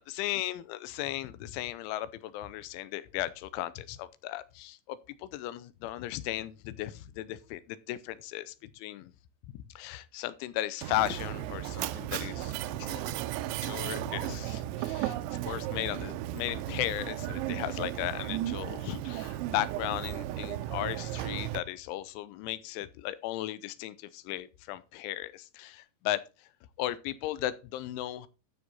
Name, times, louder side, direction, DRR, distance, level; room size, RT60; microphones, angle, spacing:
voice 1, 0.0-9.1 9.5-12.5 12.8-13.2 13.6-15.1 15.5-26.5 26.8-28.3, left 14 dB, 85° left, 3.1 m, -36 dB
Mechanisms, 10.8-21.6, right 14 dB, 80° right, 2.9 m, -35 dB
13.0 x 5.9 x 4.1 m
omnidirectional pair, 5.5 m